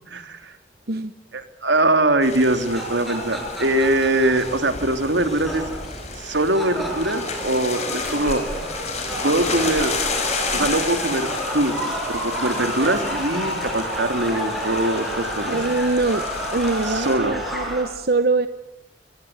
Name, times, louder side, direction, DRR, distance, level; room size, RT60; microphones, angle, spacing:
voice 1, 0.1-0.5 1.3-5.7 6.2-8.4 9.2-9.9 10.5-11.3 11.5-15.6 16.8-17.3, right 1 dB, 85° right, 8 dB, 3.0 m, -22 dB
sound 1, 2.2-17.1, left 4 dB, 35° left, 5.6 m, -32 dB
sound 2, 2.5-17.8, equal, ahead, 7.4 m, -30 dB
voice 2, 15.5-16.3 16.5-18.5, right 3 dB, 55° right, 11 dB, 0.9 m, -23 dB
24.0 x 22.0 x 9.5 m, 0.92 s
head